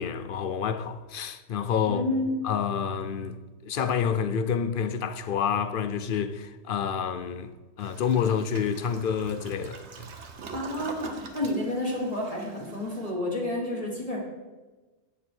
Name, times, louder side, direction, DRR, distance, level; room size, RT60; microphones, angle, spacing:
voice 1, 0.0-2.0 2.4-7.5 7.8-10.1, left 7 dB, 55° left, 0.7 m, -28 dB
voice 2, 1.9-2.3 10.5-14.2, left 1 dB, 30° left, 1.8 m, -30 dB
Toilet flush, 7.8-13.1, right 4 dB, 70° right, 1.2 m, -43 dB
8.5 x 7.0 x 4.5 m
omnidirectional pair, 1.2 m